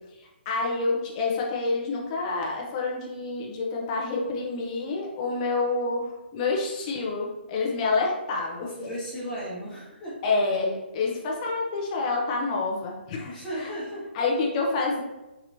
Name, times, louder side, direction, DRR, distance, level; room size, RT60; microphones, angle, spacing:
voice 1, 0.5-8.7 10.2-13.7 14.1-15.0, left 3 dB, 35° left, -1 dB, 0.8 m, -28 dB
voice 2, 8.6-10.2 13.2-14.1, equal, 10° left, -8 dB, 1.5 m, -35 dB
4.1 x 3.0 x 2.7 m, 1.0 s
hypercardioid pair, 145°, 6 cm